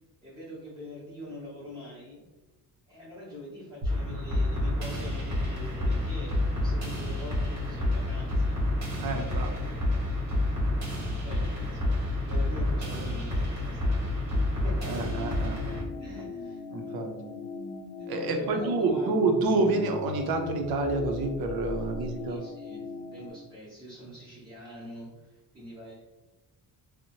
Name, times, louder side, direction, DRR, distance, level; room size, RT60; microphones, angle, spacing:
voice 1, 0.2-2.2 2.9-8.6 9.7-10.5 11.2-15.3 16.0-16.6 18.0-19.1 22.2-25.9, equal, 10° right, -11 dB, 0.7 m, -44 dB
sound 1, 3.8-15.8, left 1 dB, 45° right, 0.9 m, -29 dB
voice 2, 9.0-9.7 14.9-15.6 16.1-16.2 16.7-17.1 18.1-22.4, right 3 dB, 65° right, 4 dB, 0.5 m, -28 dB
sound 2, 12.3-22.4, equal, 35° left, 0.4 m, -45 dB
sound 3, 14.9-23.3, left 4 dB, 90° left, 0.5 m, -40 dB
2.6 x 2.1 x 2.8 m, 1.1 s
cardioid pair, 175°, 39 cm